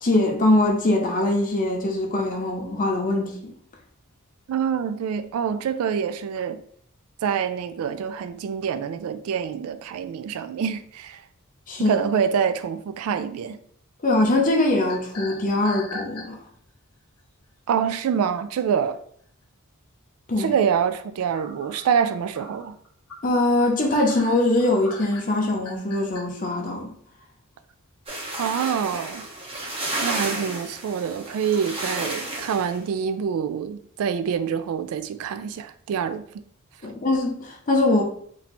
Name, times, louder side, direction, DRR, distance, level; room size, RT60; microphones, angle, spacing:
voice 1, 0.0-3.5 11.7-12.0 14.0-16.4 20.3-20.5 23.2-26.9 36.8-38.0, left 2 dB, 40° left, 0.8 m, -22 dB
voice 2, 4.5-6.6 7.2-11.2 11.8-13.6 17.7-19.0 20.4-22.8 28.4-29.3 30.0-36.2, right 7 dB, 75° right, 0.3 m, -26 dB
sound 1, 14.9-16.7 17.2-17.4 18.9-19.0 19.4-19.5 21.3-26.2, left 2 dB, 85° left, 0.9 m, -40 dB
sound 2, 28.1-32.8, right 1 dB, 25° right, 0.9 m, -32 dB
3.1 x 2.7 x 4.2 m
head